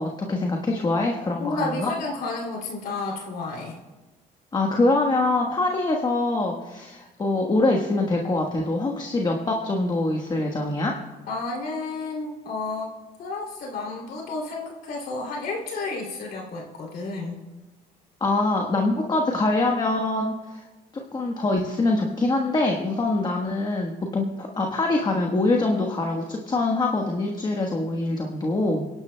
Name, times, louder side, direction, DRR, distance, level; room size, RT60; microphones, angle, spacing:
voice 1, 0.0-1.9 4.5-11.0 18.2-20.6 21.1-28.9, left 2 dB, 25° left, 1 dB, 1.3 m, -24 dB
voice 2, 1.4-3.8 11.3-12.9 13.2-17.4, left 3 dB, 65° left, -1 dB, 2.8 m, -31 dB
29.0 x 11.0 x 2.2 m, 1.2 s
cardioid pair, 110°, 17 cm